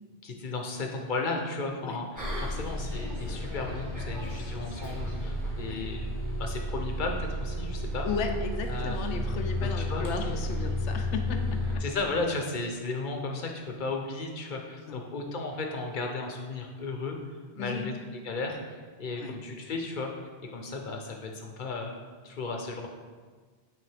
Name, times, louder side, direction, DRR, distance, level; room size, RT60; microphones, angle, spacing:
voice 1, 0.2-6.1 6.4-8.1 8.7-9.0 9.6-10.4 11.8-17.2 17.5-17.9 18.2-21.9 22.2-22.9, left 3 dB, 50° left, 2 dB, 0.8 m, -35 dB
Bus, 2.2-11.8, equal, 20° right, 1.1 m, -32 dB
voice 2, 5.6-6.0 8.0-11.8 14.8-15.0 17.6-17.9 19.2-19.4, left 5 dB, 85° left, 4 dB, 0.9 m, -35 dB
8.9 x 3.4 x 3.4 m, 1.5 s
omnidirectional pair, 1.1 m